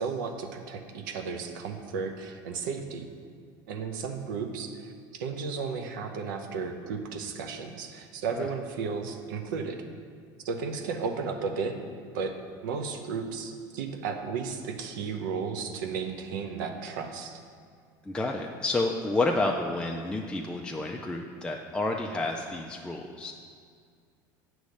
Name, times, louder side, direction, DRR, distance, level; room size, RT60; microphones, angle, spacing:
voice 1, 0.0-3.0 3.7-9.8 10.4-11.7 12.1-12.3 12.6-17.4, right 5 dB, 90° right, 5 dB, 0.7 m, -34 dB
voice 2, 18.1-23.3, left 2 dB, 10° left, 0 dB, 0.4 m, -30 dB
8.2 x 3.1 x 6.4 m, 2.2 s
supercardioid pair, 110°, 10 cm